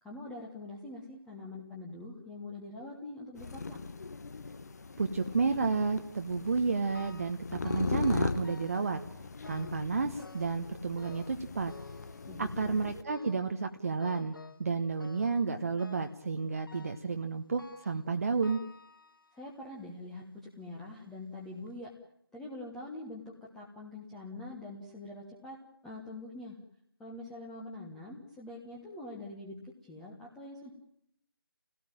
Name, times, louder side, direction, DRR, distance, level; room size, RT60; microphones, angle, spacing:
voice 1, 0.0-3.8 12.3-12.8 19.3-21.9 22.3-25.6 25.8-26.6 27.0-29.6 29.8-30.7, left 2 dB, 5° left, -4 dB, 1.3 m, -44 dB
sound 1, 3.3-13.0, left 4 dB, 40° left, 1.4 m, -39 dB
voice 2, 5.0-9.0 9.5-11.7 12.4-18.6, right 4 dB, 35° right, 5 dB, 1.1 m, -31 dB
sound 2, 6.9-7.4 7.6-8.9 9.4-9.9 10.2-10.7 11.0-12.6 13.1-13.5 14.0-14.7 15.0-15.5 15.8-16.2 16.7-17.1 17.6-18.0 18.4-19.5 20.1-20.2 21.0-21.1 21.6-21.7, left 3 dB, 60° left, 2.1 m, -53 dB
26.5 x 17.5 x 8.9 m, 0.72 s
figure-of-eight pair, 165°, 13 cm